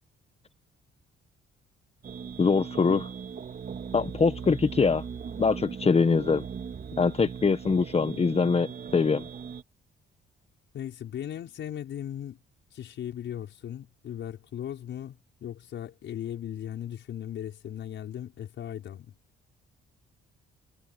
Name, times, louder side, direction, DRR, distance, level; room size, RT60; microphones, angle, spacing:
sound 1, 2.0-9.6, right 7 dB, 50° right, 4.2 m, -39 dB
voice 1, 2.4-3.1 3.9-5.0 5.4-6.4 7.0-9.3, left 5 dB, 30° left, 1.3 m, -23 dB
voice 2, 10.7-12.4 12.7-19.1, left 10 dB, 70° left, 6.0 m, -37 dB
cardioid pair, 90°, 20 cm